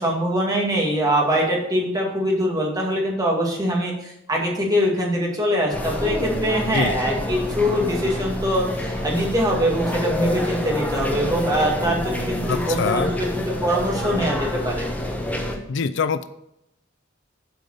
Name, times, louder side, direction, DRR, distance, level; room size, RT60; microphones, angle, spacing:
voice 1, 0.0-14.9, equal, 20° right, -2 dB, 2.2 m, -23 dB
sound 1, 5.7-15.6, left 1 dB, 10° left, 1.2 m, -27 dB
voice 2, 12.5-13.1 15.7-16.3, left 5 dB, 65° left, 13 dB, 0.4 m, -24 dB
7.7 x 5.2 x 6.6 m, 0.80 s
head